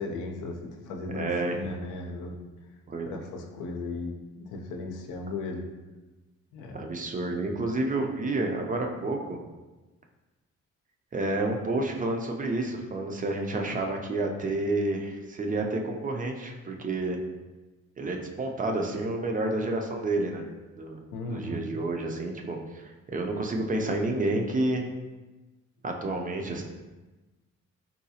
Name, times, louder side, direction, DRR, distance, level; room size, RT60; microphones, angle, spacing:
voice 1, 0.0-2.4 3.1-5.6 6.5-6.8 21.1-21.7, left 3 dB, 80° left, 2 dB, 0.6 m, -36 dB
voice 2, 1.1-1.6 2.9-3.1 6.7-9.4 11.1-17.2 18.0-20.4 20.8-21.0 21.3-24.8 25.8-26.6, right 2 dB, 30° right, 2 dB, 0.4 m, -29 dB
3.9 x 2.3 x 2.7 m, 1.2 s
cardioid pair, 90°, 30 cm